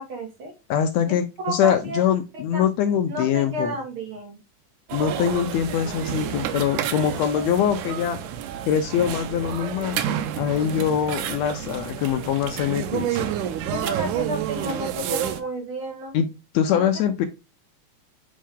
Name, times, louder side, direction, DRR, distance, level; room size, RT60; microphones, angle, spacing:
voice 1, 0.0-0.5 1.4-2.0 2.3-2.6 3.0-4.4 13.7-16.1 16.7-16.9, right 1 dB, 50° right, 1 dB, 2.2 m, -31 dB
voice 2, 0.7-3.7 4.9-8.2 8.7-10.0 10.3-13.3 16.1-16.3 16.5-17.3, left 9 dB, 75° left, 7 dB, 1.8 m, -23 dB
sound 1, 4.9-15.4, right 10 dB, 85° right, 2.2 m, -29 dB
7.5 x 4.6 x 3.5 m, 0.27 s
omnidirectional pair, 3.5 m